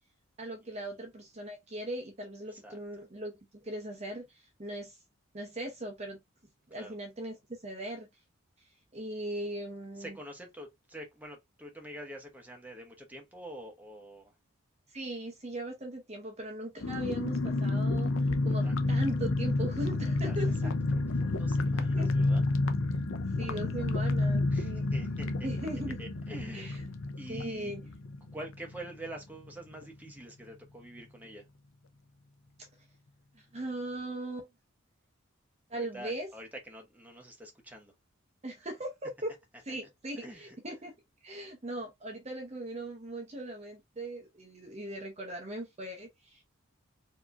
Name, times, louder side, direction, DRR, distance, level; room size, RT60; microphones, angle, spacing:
voice 1, 0.4-5.0 5.3-6.2 6.7-7.4 7.6-8.1 8.6-10.2 14.9-20.7 21.8-22.1 23.4-24.9 25.4-26.0 26.5-26.8 27.3-27.9 32.6-32.7 33.3-34.5 35.7-36.3 38.4-39.3 39.6-40.9 41.2-46.4, right 1 dB, 30° right, 0.8 m, -39 dB
voice 2, 10.0-14.3 18.6-18.8 20.0-20.4 20.6-22.5 24.5-25.5 26.0-26.8 27.2-27.7 28.3-31.4 35.7-37.9 40.2-40.6, right 1 dB, 10° right, 1.0 m, -46 dB
sound 1, 16.8-29.2 29.4-29.5 29.8-30.1, left 2 dB, 70° left, 0.7 m, -30 dB
4.7 x 2.9 x 2.6 m
head